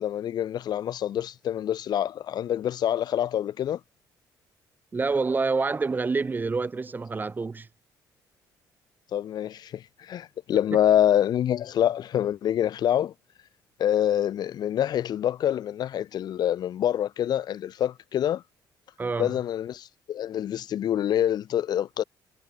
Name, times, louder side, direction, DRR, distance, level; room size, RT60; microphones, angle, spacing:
voice 1, 0.0-3.8 9.1-13.1 13.8-18.4 19.2-22.0, left 10 dB, 65° left, 1.2 m, -26 dB
voice 2, 4.9-7.7 19.0-19.3, right 4 dB, 25° right, 0.6 m, -27 dB
cardioid pair, 90°, 8 cm